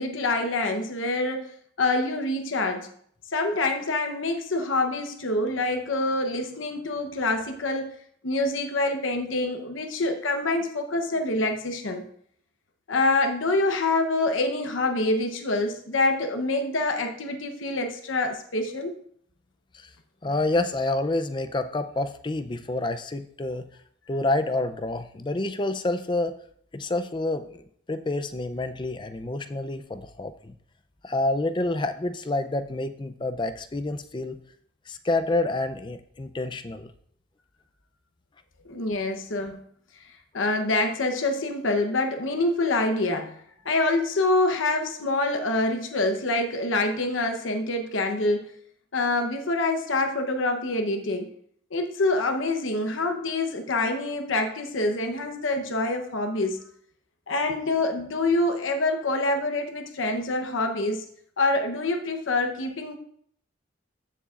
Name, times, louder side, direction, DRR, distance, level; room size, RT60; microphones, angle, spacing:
voice 1, 0.0-1.5 1.8-2.9 3.3-7.9 8.2-12.0 12.9-18.9 38.7-39.6 40.3-43.4 43.6-48.5 48.9-51.3 51.7-56.6 57.3-61.0 61.4-63.0, left 2 dB, 90° left, 5 dB, 0.9 m, -26 dB
voice 2, 20.2-23.6 24.1-26.3 26.7-30.5 31.0-34.4 34.9-36.9, left 2 dB, 25° left, 9 dB, 0.5 m, -28 dB
14.5 x 6.9 x 2.5 m, 0.64 s
head